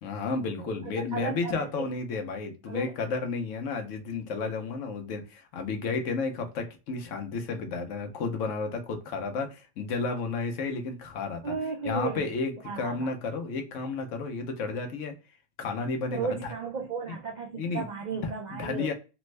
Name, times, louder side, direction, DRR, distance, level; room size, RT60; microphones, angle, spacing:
voice 1, 0.0-11.5 11.8-15.2 15.6-16.5 17.1-17.2 17.6-17.9 18.2-18.9, left 4 dB, 70° left, 1.0 m, -32 dB
voice 2, 0.6-2.2 2.7-2.9 11.4-12.3 12.6-13.1 16.1-18.9, right 5 dB, 80° right, 0.4 m, -35 dB
3.3 x 2.1 x 3.1 m
omnidirectional pair, 1.4 m